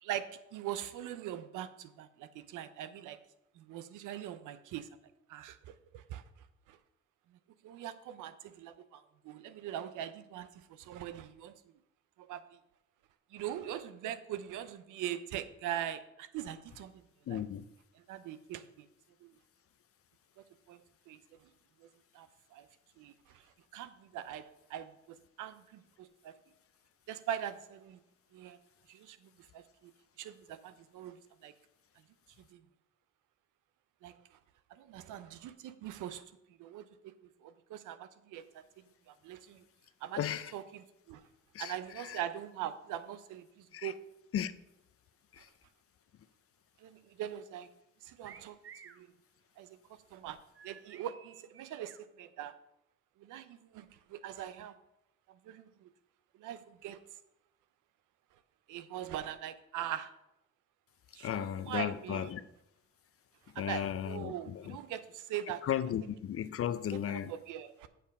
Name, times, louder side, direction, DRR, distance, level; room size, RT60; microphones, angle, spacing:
voice 1, 0.0-3.2 3.6-4.9 5.3-6.2 6.7-6.8 7.3-7.4 7.6-11.5 12.2-12.4 13.3-17.0 17.3-17.4 18.1-18.9 19.2-19.3 20.4-20.8 21.1-21.2 21.8-21.9 22.1-22.7 23.0-23.5 23.7-26.3 27.1-28.0 28.3-28.6 28.9-29.9 30.2-31.5 32.5-32.6 34.0-34.4 34.7-36.2 36.6-37.1 37.4-38.6 39.1-39.6 40.0-40.2 40.5-40.8 41.1-41.2 41.6-44.0 46.8-47.7 48.0-48.6 48.8-49.1 49.6-49.8 50.1-50.4 50.6-52.5 53.2-54.8 55.3-55.9 56.4-57.0 58.7-60.1 61.1-62.3 63.5-65.6 66.9-67.9, right 11 dB, 90° right, 0.7 m, -42 dB
voice 2, 17.3-17.7 40.2-40.5 41.5-42.2 43.7-43.9 44.3-44.5 45.3-45.5 61.2-62.4 63.5-64.8 65.6-67.3, left 10 dB, 50° left, 0.5 m, -35 dB
sound 1, 48.2-49.0 50.5-52.0, right 7 dB, 45° right, 0.7 m, -54 dB
7.4 x 6.7 x 5.3 m
cardioid pair, 90°, 30 cm